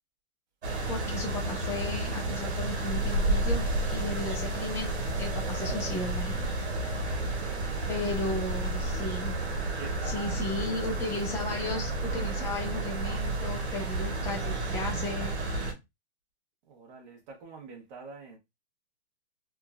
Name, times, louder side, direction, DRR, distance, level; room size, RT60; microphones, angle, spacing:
sound 1, 0.6-15.7, right 2 dB, 75° right, 1.4 m, -31 dB
voice 1, 0.9-4.9 5.2-6.7 7.9-9.4 10.0-15.3, left 2 dB, 10° left, 0.6 m, -35 dB
voice 2, 7.1-8.2 9.8-11.1 16.7-18.4, right 5 dB, 40° right, 1.2 m, -46 dB
3.6 x 2.5 x 2.3 m
hypercardioid pair, 160°, 34 cm